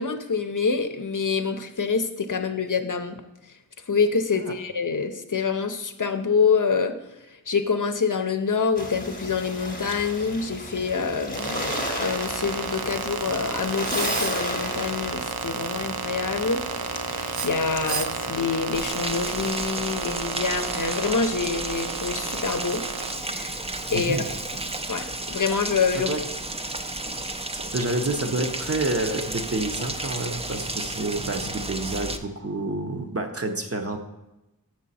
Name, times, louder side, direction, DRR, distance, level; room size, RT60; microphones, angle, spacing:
voice 1, 0.0-3.2 3.9-7.0 7.5-22.8 23.2-24.2 24.9-26.2, left 5 dB, 55° left, 7 dB, 0.7 m, -26 dB
sound 1, 8.8-18.9, left 1 dB, 25° left, 1.0 m, -35 dB
sound 2, 11.3-24.8, right 6 dB, 80° right, 0.5 m, -32 dB
Rain, 18.7-32.2, right 2 dB, 15° right, 0.5 m, -33 dB
voice 2, 23.9-24.3 25.9-26.2 27.5-34.0, right 2 dB, 40° right, 5 dB, 0.8 m, -29 dB
7.4 x 6.3 x 4.1 m, 0.98 s
wide cardioid pair, 55°, 36 cm